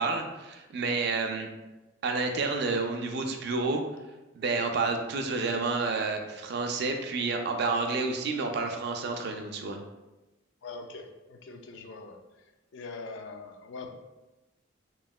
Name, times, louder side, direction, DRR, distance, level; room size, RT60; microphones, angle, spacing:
voice 1, 0.0-1.5 2.0-3.8 4.3-9.8, right 3 dB, 55° right, 4 dB, 0.3 m, -29 dB
voice 2, 10.6-12.2 12.7-13.9, left 3 dB, 65° left, 5 dB, 0.3 m, -42 dB
3.0 x 2.8 x 2.3 m, 1.1 s
head